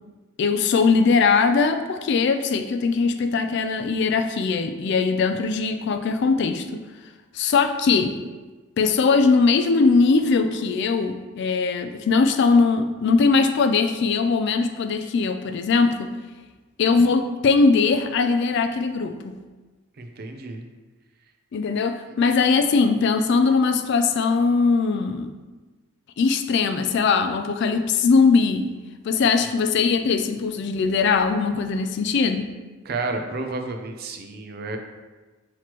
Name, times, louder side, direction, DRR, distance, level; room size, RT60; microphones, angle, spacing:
voice 1, 0.4-6.8 7.3-8.2 8.8-16.1 16.8-19.4 21.5-25.3 26.2-28.7 29.0-32.5, left 4 dB, 55° left, 8 dB, 0.3 m, -20 dB
voice 2, 20.0-20.6 29.2-29.3 32.9-34.8, right 3 dB, 45° right, 4 dB, 0.4 m, -31 dB
5.9 x 2.9 x 3.0 m, 1.3 s
head